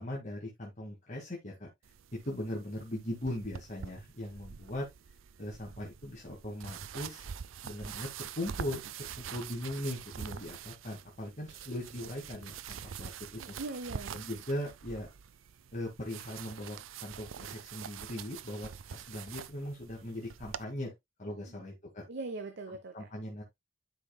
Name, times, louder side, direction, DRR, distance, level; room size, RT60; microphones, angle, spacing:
voice 1, 0.0-1.7 2.2-4.9 5.4-7.2 7.6-13.6 14.1-15.1 15.7-20.9 21.2-22.0 22.9-23.4, left 1 dB, 40° left, 1.9 m, -39 dB
sound 1, 1.8-20.6, right 7 dB, 90° right, 0.5 m, -45 dB
voice 2, 13.3-14.2 21.4-21.7 22.1-23.1, right 3 dB, 60° right, 0.9 m, -41 dB
11.5 x 5.2 x 2.2 m
head